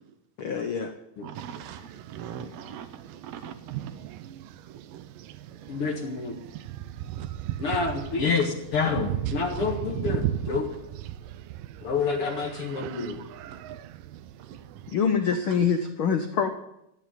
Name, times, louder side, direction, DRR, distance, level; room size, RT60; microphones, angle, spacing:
voice 1, 0.4-0.9 14.9-16.5, left 6 dB, 90° left, 7 dB, 1.1 m, -25 dB
voice 2, 1.2-3.5 4.9-5.0 7.1-7.3 7.7-7.8 12.9-13.0 13.5-13.8, right 8 dB, 65° right, 7 dB, 1.7 m, -42 dB
sound 1, 1.3-14.9, right 12 dB, 85° right, 2.4 m, -37 dB
voice 3, 5.7-6.4 7.6-10.7 11.8-13.2, left 4 dB, 50° left, 3 dB, 2.2 m, -28 dB
14.0 x 9.3 x 9.3 m, 0.81 s
omnidirectional pair, 3.8 m